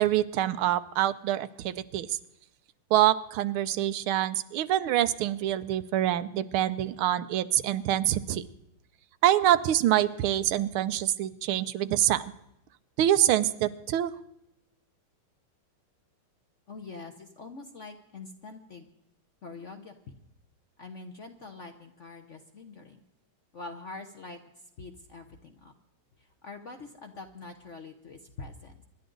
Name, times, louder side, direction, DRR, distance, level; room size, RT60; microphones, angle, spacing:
voice 1, 0.0-2.2 2.9-8.4 9.2-12.3 13.0-14.1, right 12 dB, 80° right, 13 dB, 1.6 m, -25 dB
voice 2, 16.7-18.9 19.4-19.9 20.8-23.0 23.5-24.4 24.8-25.7 26.4-28.7, left 3 dB, 50° left, 6 dB, 0.9 m, -44 dB
26.0 x 11.5 x 3.9 m, 0.83 s
omnidirectional pair, 2.3 m